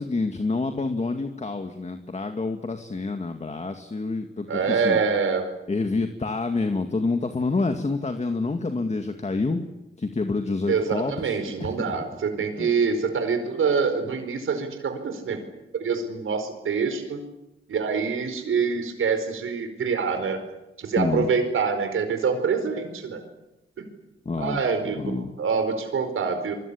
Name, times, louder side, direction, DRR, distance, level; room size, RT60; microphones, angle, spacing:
voice 1, 0.0-5.0 5.7-9.6 10.0-12.0 12.6-12.7 21.0-21.3 24.3-24.6 25.0-25.3, left 3 dB, 35° left, 6 dB, 2.1 m, -28 dB
voice 2, 4.5-5.5 10.7-15.4 15.7-17.2 17.7-20.4 20.8-23.2 23.8-23.9 24.4-26.5, right 5 dB, 85° right, 8 dB, 4.8 m, -25 dB
26.0 x 23.5 x 8.6 m, 0.97 s
cardioid pair, 85°, 21 cm